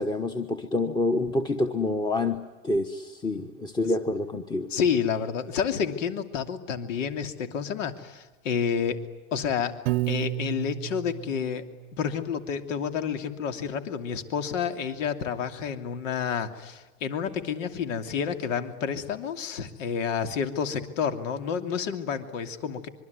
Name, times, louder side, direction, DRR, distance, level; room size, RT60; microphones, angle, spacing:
voice 1, 0.0-2.4 2.6-4.7, left 2 dB, 10° left, 8 dB, 1.2 m, -27 dB
voice 2, 4.7-9.0 9.3-9.7 10.1-11.6 12.0-22.9, left 7 dB, 75° left, 8 dB, 2.9 m, -29 dB
Piano, 9.9-12.1, right 20 dB, 50° right, 0.8 m, -31 dB
25.5 x 23.5 x 9.6 m, 1.1 s
supercardioid pair, 135°, 38 cm